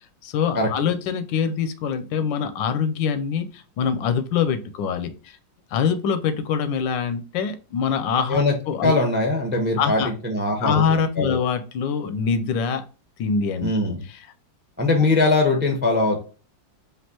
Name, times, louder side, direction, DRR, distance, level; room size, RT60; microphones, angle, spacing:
voice 1, 0.2-5.4 5.7-9.0 9.8-10.1 10.6-12.8 13.2-13.7, left 6 dB, 85° left, 10 dB, 1.3 m, -24 dB
voice 2, 8.8-10.8 11.2-11.4 13.6-14.0 14.8-16.2, left 2 dB, 15° right, 2 dB, 0.3 m, -21 dB
5.3 x 2.8 x 2.8 m, 0.36 s
omnidirectional pair, 2.0 m